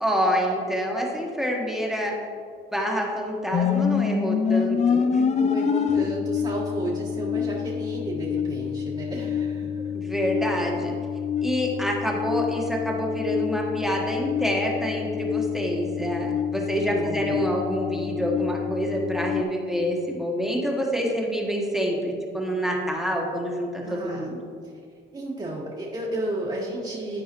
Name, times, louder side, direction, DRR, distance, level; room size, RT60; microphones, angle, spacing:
voice 1, 0.0-2.1 2.7-5.4 9.9-10.9 11.4-24.4, equal, ahead, -2 dB, 1.3 m, -27 dB
sound 1, 3.5-19.4, left 7 dB, 35° left, 0.4 m, -27 dB
voice 2, 5.3-9.8 16.5-17.4 23.8-24.3 25.1-27.2, right 1 dB, 30° right, -6 dB, 1.5 m, -32 dB
12.0 x 4.7 x 3.0 m, 2.3 s
cardioid pair, 90°, 20 cm